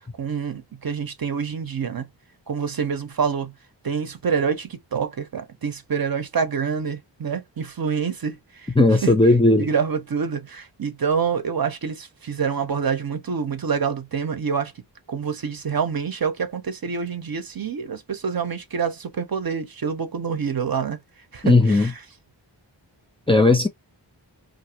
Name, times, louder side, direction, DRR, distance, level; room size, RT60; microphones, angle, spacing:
voice 1, 0.2-2.1 2.5-3.5 3.8-8.7 9.0-9.1 9.6-14.7 15.1-21.0 21.3-22.0, right 6 dB, 55° right, 0.7 m, -26 dB
voice 2, 8.8-9.7 21.4-21.9 23.3-23.7, left 2 dB, 15° left, 0.4 m, -16 dB
2.5 x 2.0 x 2.8 m
wide cardioid pair, 60°, 44 cm